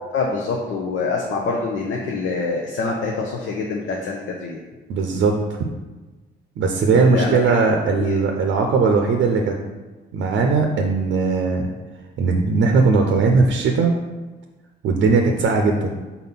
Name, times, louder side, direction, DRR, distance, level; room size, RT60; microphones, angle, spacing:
voice 1, 0.0-4.6 6.9-7.6 8.1-8.2, left 4 dB, 75° left, -1 dB, 0.8 m, -25 dB
voice 2, 4.9-5.3 6.6-9.6 10.1-11.7 12.2-13.9 14.8-15.9, right 4 dB, 75° right, 3 dB, 0.6 m, -18 dB
4.2 x 4.0 x 5.5 m, 1.2 s
cardioid pair, 90°, 20 cm